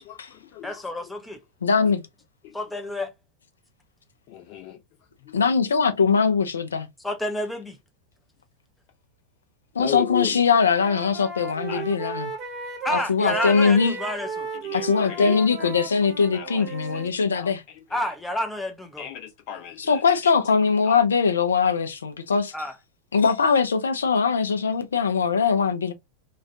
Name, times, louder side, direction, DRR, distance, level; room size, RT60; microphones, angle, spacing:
voice 1, 0.1-0.8 2.4-2.5 4.3-4.8 9.8-10.4 11.7-11.8 13.4-13.5 14.6-15.7 16.3-16.6 16.9-17.0 17.3-17.5 19.0-20.0 20.9-21.0, left 9 dB, 45° left, 0.8 m, -34 dB
voice 2, 0.6-1.4 2.5-3.1 7.0-7.8 12.8-14.5 17.9-19.1 22.5-22.7, left 1 dB, 5° left, 0.5 m, -29 dB
voice 3, 1.6-2.0 5.3-6.9 9.8-12.3 12.9-14.0 14.7-17.6 19.8-22.5 23.1-25.9, left 5 dB, 70° left, 0.4 m, -21 dB
Wind instrument woodwind instrument, 9.9-10.3 10.6-17.1, right 4 dB, 25° right, 0.8 m, -35 dB
2.4 x 2.2 x 2.5 m
figure-of-eight pair, 90°, 0 cm